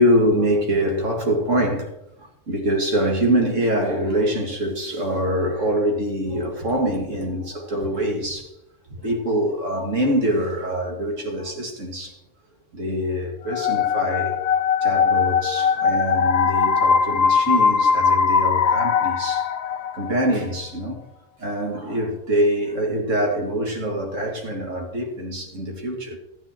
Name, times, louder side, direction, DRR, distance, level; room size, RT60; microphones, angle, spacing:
voice 1, 0.0-1.9 2.2-8.6 8.9-12.2 12.7-19.5 19.9-21.0 21.4-26.2, equal, 85° right, 2.4 m, -24 dB
sound 1, 13.5-20.3, left 6 dB, 75° left, 0.3 m, -20 dB
13.5 x 9.3 x 4.4 m
omnidirectional pair, 1.3 m